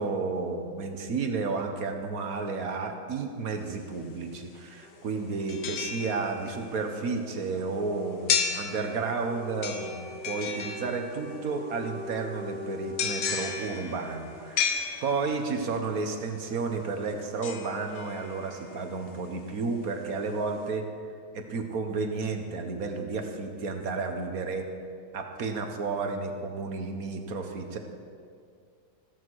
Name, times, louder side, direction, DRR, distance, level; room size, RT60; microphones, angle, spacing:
voice 1, 0.0-20.9 21.3-24.7 25.1-27.8, right 4 dB, 50° right, 5 dB, 1.5 m, -32 dB
sound 1, 3.5-3.6 5.5-6.7 8.3-9.2 9.6-11.3 13.0-15.5 17.4-18.6 19.1-19.2, left 7 dB, 70° left, 1.6 m, -33 dB
sound 2, 4.5-19.3, left 1 dB, 15° right, 3.2 m, -45 dB
15.0 x 14.0 x 4.8 m, 2.3 s
omnidirectional pair, 2.2 m